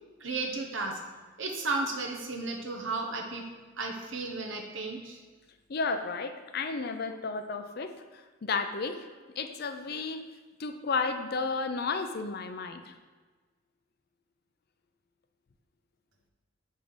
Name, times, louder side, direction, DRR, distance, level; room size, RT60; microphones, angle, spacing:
voice 1, 0.2-1.0 1.4-3.5 3.8-5.2, right 3 dB, 65° right, 2 dB, 1.1 m, -34 dB
voice 2, 5.7-7.9 8.4-9.1 9.4-10.2 10.6-12.9, left 4 dB, 50° left, 8 dB, 0.5 m, -32 dB
5.6 x 5.0 x 6.3 m, 1.4 s
head